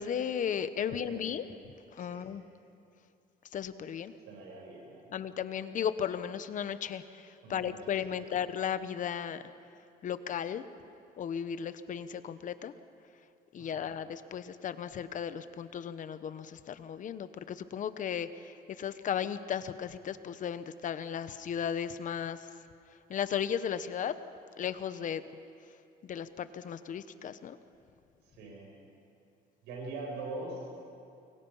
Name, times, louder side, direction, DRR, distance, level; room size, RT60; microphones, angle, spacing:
voice 1, 0.0-1.4 1.9-2.4 3.5-4.1 5.1-9.4 10.0-10.6 11.2-12.7 13.5-22.5 23.1-24.1 24.6-25.2 26.0-27.6, left 8 dB, 50° left, 12 dB, 1.1 m, -35 dB
voice 2, 0.9-1.5 2.0-2.3 4.3-5.2 7.4-7.8 8.0-8.4 13.6-13.9 28.2-28.7 29.6-30.9, right 2 dB, 90° right, 0 dB, 7.4 m, -43 dB
29.0 x 23.0 x 5.7 m, 2.5 s
cardioid pair, 110°, 17 cm